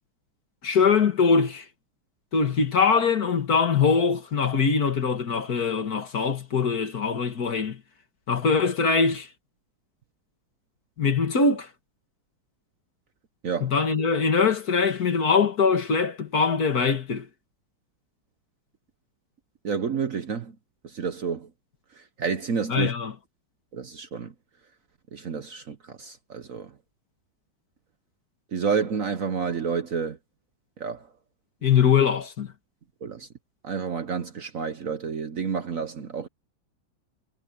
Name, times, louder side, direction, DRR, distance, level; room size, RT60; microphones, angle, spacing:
voice 1, 0.6-1.6 2.3-7.8 8.3-9.3 11.0-11.7 13.6-17.3 22.7-23.1 31.6-32.5, left 5 dB, 55° left, 2.1 m, -22 dB
voice 2, 19.6-20.5 20.8-21.5 22.2-22.9 23.7-24.3 25.1-26.7 28.5-30.2 30.8-31.1 33.0-33.3 33.6-36.3, right 6 dB, 50° right, 1.2 m, -29 dB
omnidirectional pair, 2.1 m